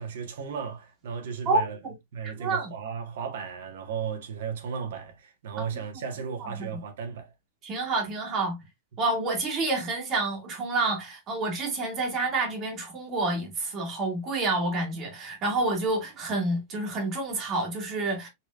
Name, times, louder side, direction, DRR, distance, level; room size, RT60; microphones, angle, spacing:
voice 1, 0.0-1.8 2.1-7.3, right 6 dB, 75° right, 1.4 m, -35 dB
voice 2, 1.4-1.9 2.2-2.7 5.6-5.8 6.4-6.8 7.6-8.6 9.0-18.3, right 2 dB, 30° right, 1.5 m, -28 dB
4.2 x 3.1 x 2.4 m
supercardioid pair, 145°, 0 cm